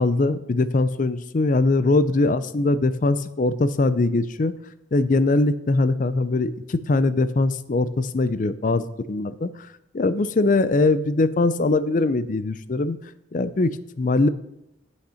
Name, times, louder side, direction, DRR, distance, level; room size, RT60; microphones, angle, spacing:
voice 1, 0.0-4.6 4.9-9.5 9.9-13.0 13.3-14.3, left 2 dB, 45° left, 15 dB, 0.4 m, -21 dB
8.7 x 6.5 x 5.6 m, 0.82 s
head